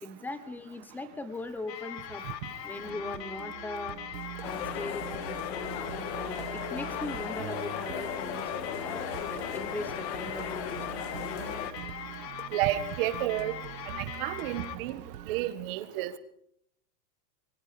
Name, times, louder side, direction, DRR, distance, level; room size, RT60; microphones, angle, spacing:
voice 1, 0.0-2.2 2.6-4.0 4.4-9.0 9.3-11.1, left 2 dB, 5° left, 11 dB, 0.9 m, -40 dB
sound 1, 1.7-14.8, left 9 dB, 75° left, 2.9 m, -41 dB
sound 2, 2.8-15.5, right 13 dB, 70° right, 1.4 m, -44 dB
sound 3, 4.4-11.7, left 10 dB, 40° left, 2.0 m, -37 dB
voice 2, 12.5-13.6 13.9-15.0 15.3-16.2, right 14 dB, 35° right, 13 dB, 1.6 m, -31 dB
30.0 x 24.0 x 5.0 m, 0.70 s
supercardioid pair, 175°, 50 cm